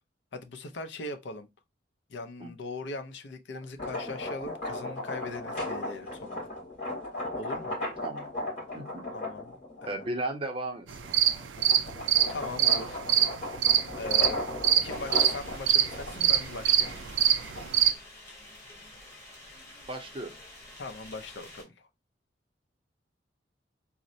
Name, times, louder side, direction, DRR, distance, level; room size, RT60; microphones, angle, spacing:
voice 1, 0.3-1.5 2.1-6.5 7.3-7.8 9.1-10.1 12.3-13.3 14.0-14.5 14.8-17.0 20.8-21.9, left 3 dB, 70° left, 0.5 m, -40 dB
sound 1, 3.6-10.2 10.7-17.9, left 2 dB, 45° left, 2.2 m, -37 dB
voice 2, 8.7-9.1 9.9-11.5 19.9-20.4, right 1 dB, 30° right, 0.6 m, -36 dB
sound 2, 10.9-17.9, right 10 dB, 85° right, 0.4 m, -24 dB
sound 3, 14.9-21.6, left 1 dB, 15° left, 1.1 m, -49 dB
4.0 x 2.0 x 2.6 m
head